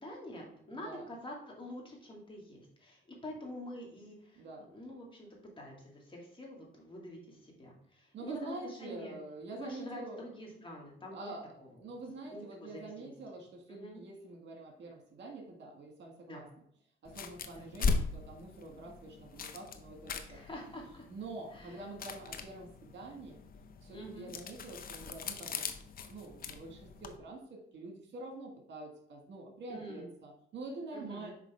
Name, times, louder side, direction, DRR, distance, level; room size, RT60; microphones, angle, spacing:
voice 1, 0.0-4.4 4.7-5.3 5.6-9.2 9.5-11.3 12.0-13.1 13.7-14.0 16.3-16.4 17.5-17.7 20.3-21.0 21.5-21.8 23.9-24.3 29.7-30.1 30.9-31.3, left 1 dB, 25° left, -2 dB, 2.2 m, -47 dB
voice 2, 0.7-1.1 4.4-4.7 8.1-10.3 11.0-16.5 17.0-20.4 21.1-23.4 23.8-31.3, right 2 dB, 65° right, 2 dB, 1.8 m, -46 dB
sound 1, 17.0-27.2, left 4 dB, 45° left, 0.7 m, -40 dB
6.0 x 4.9 x 3.5 m, 0.67 s
cardioid pair, 90°, 20 cm